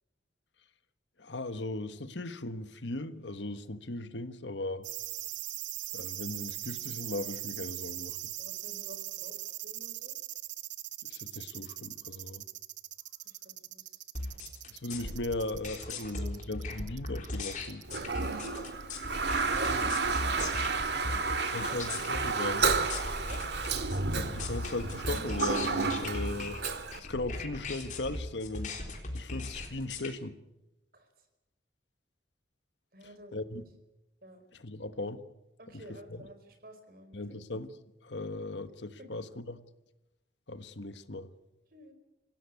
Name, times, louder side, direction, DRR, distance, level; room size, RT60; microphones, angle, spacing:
voice 1, 1.2-4.9 5.9-8.2 11.0-12.4 14.7-17.8 21.5-22.6 24.1-26.6 27.0-28.7 29.1-30.3 33.3-33.7 34.5-35.2 35.7-35.8 36.1-36.2 37.1-37.8 38.0-39.6 40.5-41.3, left 2 dB, 80° left, 1.4 m, -38 dB
sound 1, 4.8-18.9 19.2-19.3, right 16 dB, 85° right, 0.8 m, -40 dB
voice 2, 8.4-10.1 13.2-14.1 15.9-16.4 18.2-19.1 19.4-21.4 21.7-22.5 23.2-23.4 26.8-27.0 30.9-31.1 32.9-33.3 34.2-34.4 35.6-37.4 39.0-39.2 41.7-41.9, right 1 dB, 55° right, 4.6 m, -50 dB
sound 2, 14.1-30.1, left 2 dB, 45° left, 3.8 m, -38 dB
Toilet flush, 17.9-27.0, right 4 dB, 70° right, 2.0 m, -31 dB
26.5 x 16.5 x 9.5 m
head